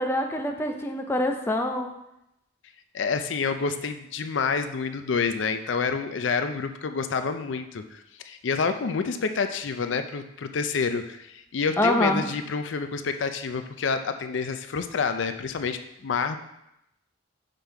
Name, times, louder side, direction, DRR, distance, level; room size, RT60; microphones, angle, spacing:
voice 1, 0.0-1.9 11.8-12.3, left 1 dB, 15° left, 3 dB, 0.6 m, -25 dB
voice 2, 2.9-16.4, left 5 dB, 80° left, 8 dB, 0.5 m, -28 dB
5.7 x 5.2 x 4.6 m, 0.84 s
head